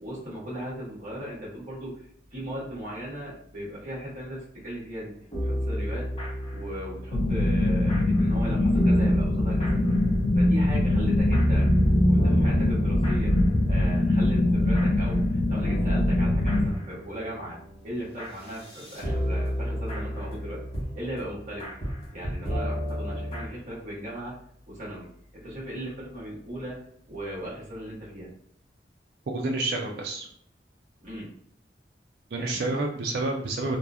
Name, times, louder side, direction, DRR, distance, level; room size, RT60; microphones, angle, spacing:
voice 1, 0.0-6.1 6.5-9.8 10.3-11.7 12.1-13.3 13.6-17.6 17.8-20.6 20.9-21.7 22.1-24.4 24.7-25.1 25.3-26.8 27.1-28.3 31.0-31.3 32.4-32.6, equal, 45° right, -8 dB, 1.3 m, -37 dB
sound 1, 5.0-8.4 8.7-11.8 12.2-23.5, equal, 35° left, 0.8 m, -34 dB
sound 2, 7.1-16.7, left 1 dB, 85° left, 0.5 m, -23 dB
sound 3, 11.2-16.3, equal, 15° left, 0.3 m, -28 dB
voice 2, 29.3-30.3 32.3-33.8, right 2 dB, 65° right, 0 dB, 0.4 m, -29 dB
3.0 x 2.3 x 2.3 m, 0.67 s
head